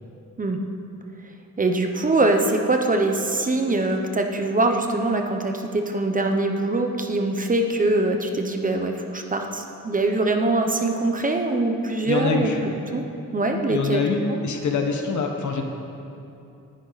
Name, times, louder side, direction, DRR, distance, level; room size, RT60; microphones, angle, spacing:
voice 1, 1.6-12.5 12.9-13.0 13.3-14.1, right 2 dB, 25° right, 4 dB, 1.0 m, -23 dB
voice 2, 12.1-12.6 13.7-15.6, left 4 dB, 65° left, 3 dB, 1.5 m, -25 dB
18.5 x 11.0 x 4.2 m, 2.7 s
wide cardioid pair, 145°, 32 cm